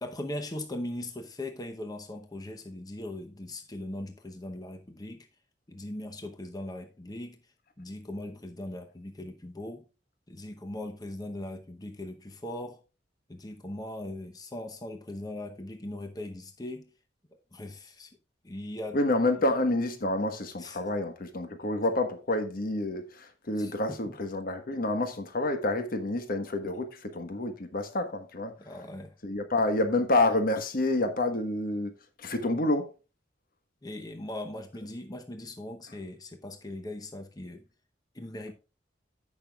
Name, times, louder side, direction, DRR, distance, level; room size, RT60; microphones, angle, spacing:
voice 1, 0.0-5.3 5.7-7.4 7.8-9.8 10.3-12.8 13.3-16.9 17.3-18.1 18.4-19.0 20.6-20.8 23.6-24.2 28.6-29.2 33.8-37.6 38.1-38.5, left 1 dB, 20° left, 0.8 m, -39 dB
voice 2, 18.9-28.5 29.2-31.9 32.2-32.9, left 2 dB, 55° left, 1.3 m, -28 dB
16.0 x 6.0 x 2.4 m
head